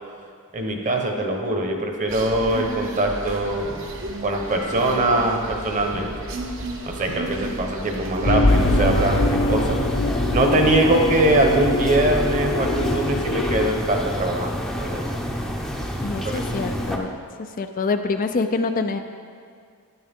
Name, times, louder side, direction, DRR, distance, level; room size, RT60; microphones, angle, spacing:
voice 1, 0.5-3.9 4.2-6.3 6.8-9.8 10.3-14.5 14.8-15.1 16.2-16.4, right 1 dB, 35° right, 2 dB, 1.1 m, -22 dB
sound 1, 2.1-8.4, right 1 dB, 60° right, 1.1 m, -33 dB
sound 2, 8.2-13.7, left 2 dB, 60° left, 0.8 m, -23 dB
sound 3, 8.5-17.0, equal, ahead, 0.7 m, -28 dB
voice 2, 16.0-17.1 17.6-19.0, left 3 dB, 40° left, 7 dB, 0.4 m, -25 dB
13.0 x 9.7 x 3.7 m, 2.2 s
head